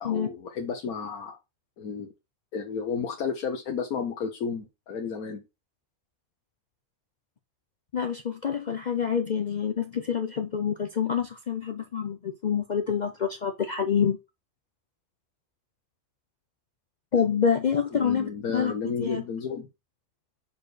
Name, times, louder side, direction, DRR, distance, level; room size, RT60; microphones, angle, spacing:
voice 1, 0.0-1.4 1.8-2.1 2.5-5.4 17.9-19.7, left 6 dB, 80° left, 1.5 m, -32 dB
voice 2, 7.9-14.2 17.1-19.2, left 7 dB, 60° left, 0.4 m, -27 dB
6.9 x 4.3 x 3.2 m
omnidirectional pair, 1.5 m